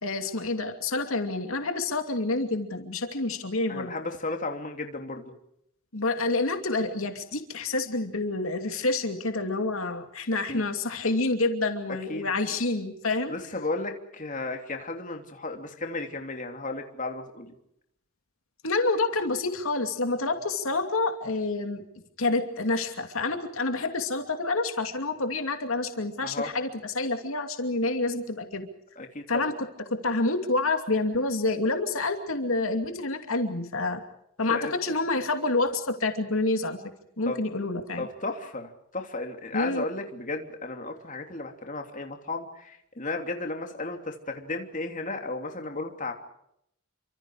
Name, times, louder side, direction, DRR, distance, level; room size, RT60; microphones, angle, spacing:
voice 1, 0.0-3.9 5.9-13.3 18.6-21.8 22.2-28.7 29.3-29.7 30.0-34.0 34.4-36.8 37.2-38.1 39.5-39.9, left 3 dB, 75° left, 6 dB, 2.6 m, -28 dB
voice 2, 3.7-5.2 10.5-10.6 12.1-12.3 13.3-17.5 26.2-26.5 29.0-29.5 34.5-34.8 37.3-37.4 38.0-46.1, left 2 dB, 40° left, 4 dB, 3.1 m, -34 dB
29.5 x 25.5 x 4.9 m, 0.77 s
head